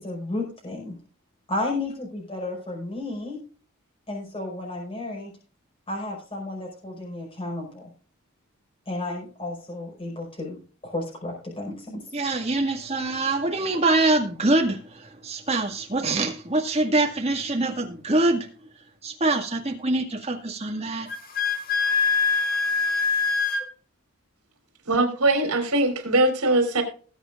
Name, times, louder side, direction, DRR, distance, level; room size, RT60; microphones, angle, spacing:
voice 1, 0.0-1.0 1.5-3.4 4.1-5.3 5.9-7.9 8.9-10.6 10.8-12.0, left 2 dB, 25° left, -2 dB, 5.3 m, -32 dB
voice 2, 12.1-18.5 19.0-21.1, right 2 dB, 30° right, 3 dB, 2.0 m, -24 dB
Wind instrument woodwind instrument, 21.1-23.7, left 5 dB, 40° left, 1.9 m, -23 dB
voice 3, 24.9-26.8, right 2 dB, 80° right, 5 dB, 3.6 m, -21 dB
20.0 x 8.1 x 2.5 m, 0.41 s
head